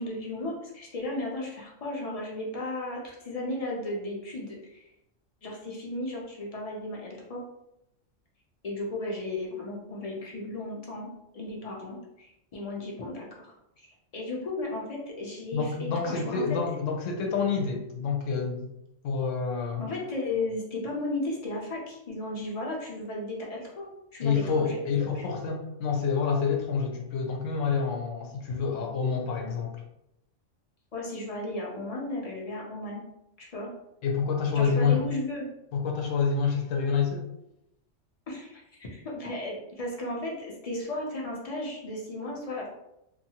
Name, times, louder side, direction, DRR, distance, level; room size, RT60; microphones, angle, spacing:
voice 1, 0.0-4.9 5.4-7.4 8.6-13.9 14.1-16.5 19.8-24.8 25.1-25.2 30.9-33.0 33.4-33.7 34.5-35.5 38.3-42.7, left 2 dB, 45° left, -2 dB, 0.5 m, -35 dB
voice 2, 15.5-18.7 19.0-19.8 24.2-29.8 34.0-35.1 35.7-37.3, left 5 dB, 85° left, 1 dB, 1.0 m, -28 dB
2.7 x 2.3 x 2.8 m, 0.83 s
omnidirectional pair, 1.3 m